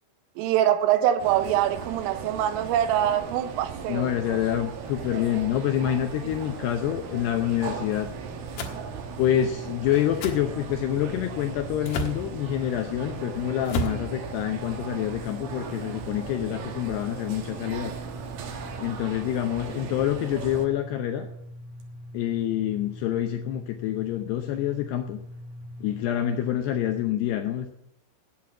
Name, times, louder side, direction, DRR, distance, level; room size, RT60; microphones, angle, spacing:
voice 1, 0.4-4.4, right 11 dB, 85° right, 10 dB, 3.6 m, -24 dB
sound 1, 1.2-20.7, right 7 dB, 65° right, 2.3 m, -38 dB
voice 2, 3.9-8.1 9.2-17.9 18.8-21.3 22.1-25.2 25.8-27.7, left 11 dB, 85° left, 6 dB, 2.3 m, -27 dB
sound 2, 7.7-27.0, left 1 dB, 50° right, 2.3 m, -43 dB
sound 3, 8.6-8.8 10.2-10.4 11.8-12.2 13.6-14.0, equal, 65° left, 2.3 m, -29 dB
9.5 x 8.8 x 9.7 m, 0.77 s
omnidirectional pair, 5.8 m